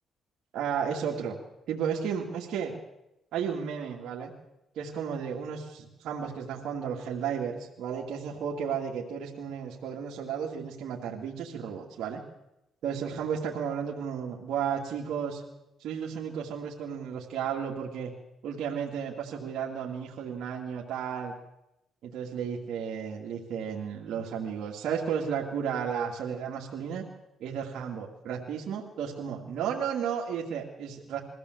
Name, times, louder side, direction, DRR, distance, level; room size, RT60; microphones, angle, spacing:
voice 1, 0.5-1.4 1.7-2.8 3.3-4.3 4.7-12.2 12.8-15.4 15.8-18.1 18.4-21.3 22.0-27.1 27.4-31.2, right 7 dB, 75° right, -3 dB, 2.5 m, -33 dB
22.0 x 15.5 x 8.0 m, 0.90 s
cardioid pair, 90°, 0 cm